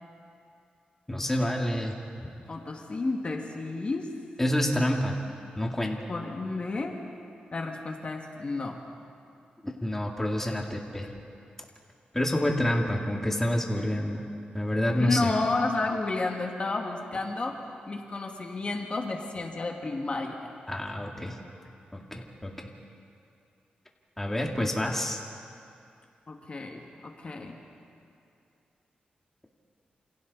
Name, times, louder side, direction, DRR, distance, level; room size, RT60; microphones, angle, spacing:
voice 1, 1.1-2.3 4.4-5.2 5.6-6.0 9.6-11.1 12.1-14.2 14.5-15.3 20.7-21.3 21.9-22.5 24.2-25.2, left 1 dB, 10° left, 0 dB, 2.1 m, -28 dB
voice 2, 2.5-4.2 6.1-7.1 7.5-8.9 13.8-13.9 15.0-20.5 26.3-27.6, left 3 dB, 40° left, 2 dB, 2.0 m, -31 dB
28.5 x 28.0 x 4.1 m, 2.5 s
wide cardioid pair, 110°, 3 cm